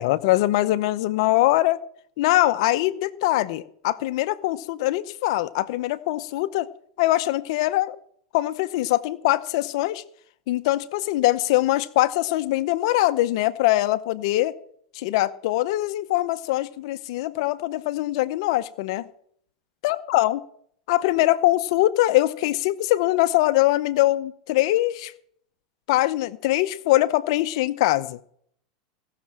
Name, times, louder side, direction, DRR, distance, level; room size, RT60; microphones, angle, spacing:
voice 1, 0.0-1.8 2.2-6.7 7.0-8.0 8.3-10.0 10.5-14.5 14.9-19.1 19.8-20.4 20.9-25.1 25.9-28.2, left 16 dB, 65° left, 13 dB, 0.7 m, -22 dB
17.5 x 6.6 x 7.4 m, 0.64 s
supercardioid pair, 125°, 3 cm